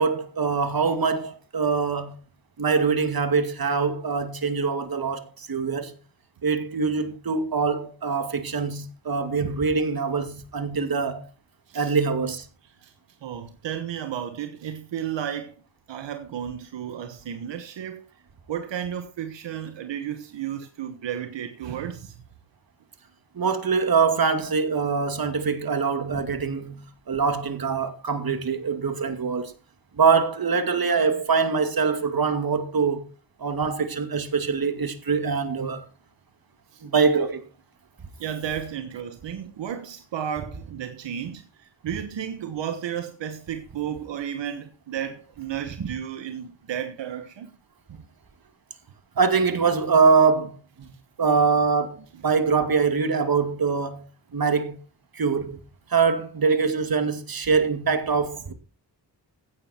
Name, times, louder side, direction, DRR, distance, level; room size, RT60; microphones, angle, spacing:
voice 1, 0.0-2.1 2.6-5.9 6.4-11.2 11.7-12.5 23.4-29.5 30.0-33.1 33.4-35.8 36.8-37.4 45.8-45.9 49.2-50.9 51.2-54.0 54.3-54.8 55.1-55.6 55.9-58.5, right 5 dB, 55° right, 2.5 m, -23 dB
voice 2, 13.2-15.5 15.9-18.0 18.5-22.1 38.2-47.5 47.9-48.0, right 9 dB, 85° right, 1.4 m, -33 dB
15.5 x 9.2 x 4.5 m
cardioid pair, 60°, 43 cm